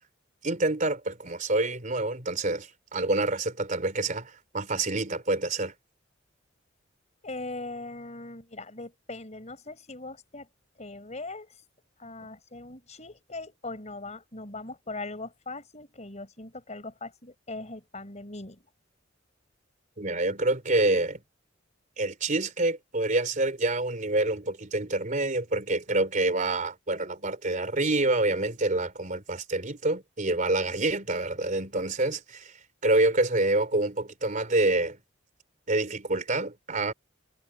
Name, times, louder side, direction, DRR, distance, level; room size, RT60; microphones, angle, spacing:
voice 1, 0.4-5.7 20.0-21.2 22.0-32.5 32.8-35.0 35.7-36.9, right 2 dB, 40° right, 3.4 m, -27 dB
voice 2, 7.2-10.5 10.8-11.5 12.0-18.7, left 2 dB, 35° left, 5.5 m, -40 dB
head